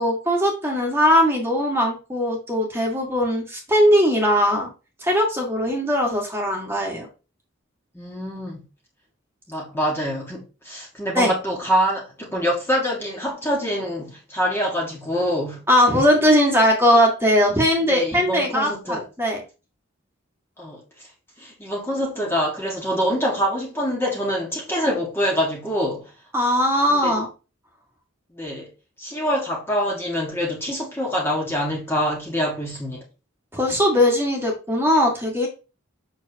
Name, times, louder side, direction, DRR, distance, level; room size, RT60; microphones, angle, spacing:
voice 1, 0.0-4.7 5.0-7.1 11.2-11.3 15.7-19.4 26.3-27.3 33.5-35.5, equal, 10° right, 1.9 m, -19 dB
voice 2, 7.9-8.6 9.5-15.6 17.9-19.0 20.6-21.1 21.4-26.1 26.9-27.2 28.3-28.7 29.0-33.0, equal, 10° left, 1.7 m, -25 dB
7.6 x 6.3 x 2.9 m
head